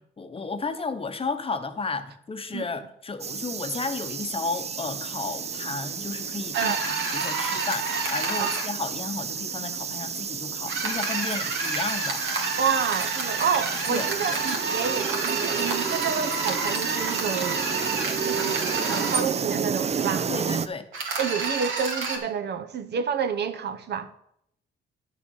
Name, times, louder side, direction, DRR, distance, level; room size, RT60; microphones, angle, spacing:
voice 1, 0.2-12.6 13.9-14.4 20.3-20.8, left 4 dB, 30° left, 0.9 m, -33 dB
sound 1, 3.2-20.7, right 6 dB, 35° right, 0.5 m, -31 dB
sound 2, 6.5-8.7 10.7-19.2 20.9-22.2, right 4 dB, 80° right, 2.0 m, -29 dB
voice 2, 12.6-17.7 18.2-20.3 21.2-24.1, right 7 dB, 55° right, 0.8 m, -29 dB
10.0 x 6.2 x 5.5 m
cardioid pair, 90°, 20 cm